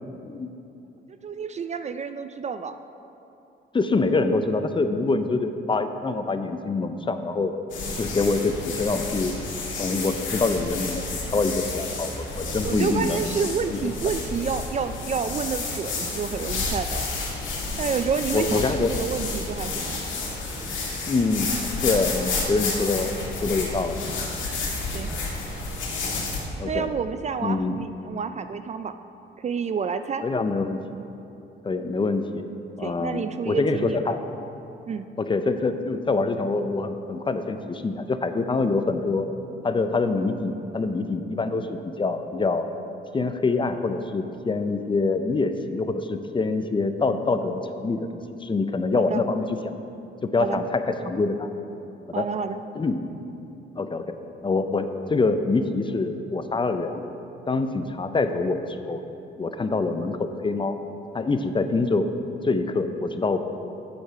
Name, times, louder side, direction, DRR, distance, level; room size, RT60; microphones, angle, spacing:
voice 1, 1.1-2.8 12.6-17.1 17.8-20.0 24.9-25.1 26.6-28.9 29.4-30.2 32.8-34.0 34.9-35.1 48.9-49.2 50.4-50.6 52.1-52.6, right 6 dB, 35° right, 10 dB, 0.4 m, -29 dB
voice 2, 3.7-7.6 8.0-9.3 9.8-13.3 13.7-13.8 18.3-18.9 21.1-21.5 21.8-23.1 23.4-24.0 26.6-26.9 27.4-27.8 30.2-30.8 31.6-32.4 32.8-34.2 35.2-39.3 39.6-42.7 43.1-49.6 50.2-51.5 52.1-52.3 52.8-53.0 53.8-54.0 54.4-57.0 57.5-59.0 59.4-60.8 61.1-62.1 62.4-63.4, left 3 dB, 25° left, 8 dB, 0.5 m, -25 dB
sound 1, 7.7-26.4, left 3 dB, 75° left, 2.1 m, -30 dB
7.8 x 6.6 x 5.5 m, 2.8 s
cardioid pair, 90°, 20 cm